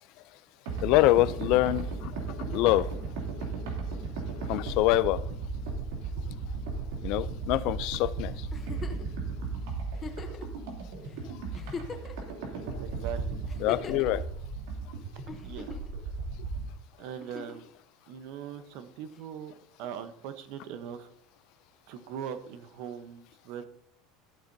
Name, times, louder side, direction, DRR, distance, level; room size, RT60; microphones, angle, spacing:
sound 1, 0.7-16.7, right 4 dB, 85° right, 2.9 m, -35 dB
voice 1, 0.8-2.1 2.5-2.9 4.5-5.2 7.0-8.3 13.6-14.2, left 16 dB, 50° left, 0.4 m, -25 dB
Giggle, 8.5-9.1 9.9-10.4 11.1-11.2 11.5-12.3 13.5-14.1 15.3-15.9 17.2-17.7 19.2-19.3, left 5 dB, 20° left, 0.9 m, -41 dB
voice 2, 12.8-13.4 15.4-15.8 17.0-17.7 18.1-19.5 19.8-21.1 21.9-23.7, right 9 dB, 55° right, 0.9 m, -40 dB
14.0 x 8.2 x 2.7 m
cardioid pair, 170°, 0 cm